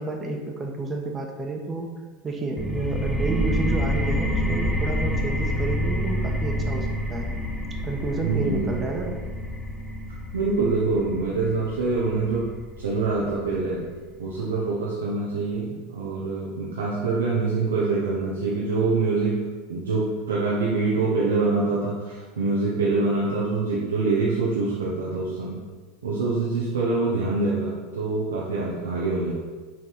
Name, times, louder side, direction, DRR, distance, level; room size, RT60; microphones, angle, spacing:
voice 1, 0.0-1.9 2.2-7.3 7.8-9.1 14.4-14.5, right 2 dB, 25° right, 2 dB, 1.3 m, -30 dB
sound 1, 2.6-14.0, equal, ahead, 0.8 m, -28 dB
voice 2, 8.2-8.8 10.3-13.9 14.2-25.6 26.0-29.3, right 3 dB, 80° right, -5 dB, 1.1 m, -25 dB
6.3 x 4.5 x 5.7 m, 1.4 s
figure-of-eight pair, 85°, 0 cm